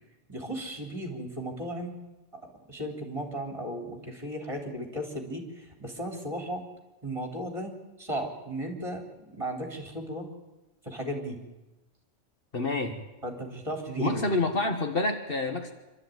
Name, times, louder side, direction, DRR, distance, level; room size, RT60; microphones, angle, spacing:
voice 1, 0.3-2.0 2.7-6.6 7.0-7.7 8.0-9.0 9.4-10.3 10.8-11.4 13.2-14.2, right 1 dB, 25° right, 2 dB, 3.6 m, -35 dB
voice 2, 12.5-13.0 14.0-15.7, left 2 dB, 55° left, 5 dB, 1.8 m, -28 dB
25.5 x 13.0 x 9.3 m, 1.1 s
omnidirectional pair, 1.2 m